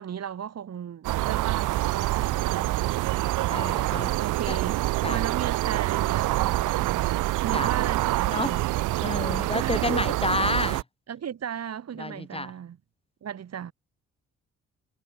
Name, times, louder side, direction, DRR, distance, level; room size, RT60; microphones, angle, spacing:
voice 1, 0.0-3.4 4.1-8.7 9.5-10.2 11.1-12.8 13.2-13.7, right 8 dB, 55° right, 4.7 m, -36 dB
sound 1, 1.0-10.8, right 17 dB, 90° right, 1.2 m, -26 dB
voice 2, 3.5-4.2 4.5-4.6 5.0-5.2 7.5-7.7 8.3-8.5 9.0-10.8 12.0-12.5, left 2 dB, 20° left, 5.5 m, -29 dB
cardioid pair, 90°, 30 cm